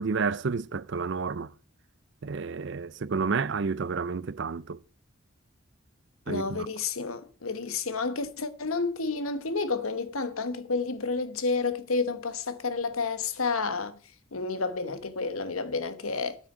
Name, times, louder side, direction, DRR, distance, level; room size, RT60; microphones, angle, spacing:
voice 1, 0.0-1.5 2.2-4.8 6.3-6.7, right 5 dB, 55° right, 0.5 m, -30 dB
voice 2, 6.3-14.0 14.3-16.4, left 4 dB, 80° left, 1.2 m, -30 dB
8.9 x 6.4 x 8.5 m
head